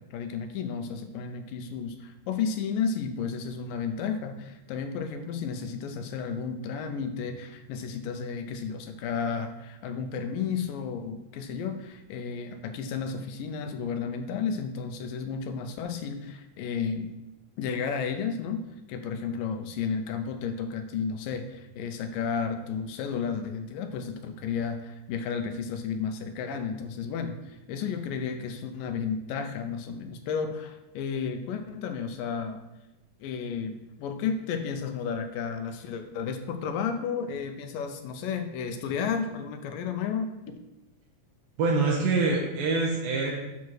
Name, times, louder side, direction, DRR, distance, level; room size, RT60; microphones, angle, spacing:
voice 1, 0.0-17.1 17.6-32.6 33.2-40.6, left 6 dB, 80° left, 7 dB, 2.3 m, -32 dB
voice 2, 41.6-43.3, right 3 dB, 75° right, -2 dB, 2.8 m, -25 dB
8.3 x 4.5 x 6.3 m, 0.99 s
omnidirectional pair, 4.1 m